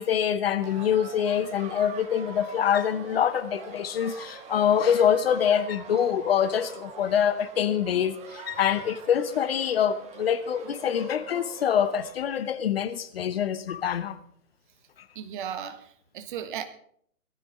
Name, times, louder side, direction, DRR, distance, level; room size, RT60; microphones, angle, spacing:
voice 1, 0.0-14.2, left 8 dB, 40° left, 11 dB, 1.0 m, -25 dB
sound 1, 0.6-12.1, right 5 dB, 15° right, 1.2 m, -44 dB
voice 2, 15.1-16.7, right 9 dB, 35° right, 10 dB, 1.3 m, -36 dB
18.0 x 13.0 x 3.7 m, 0.66 s
figure-of-eight pair, 125°, 45 cm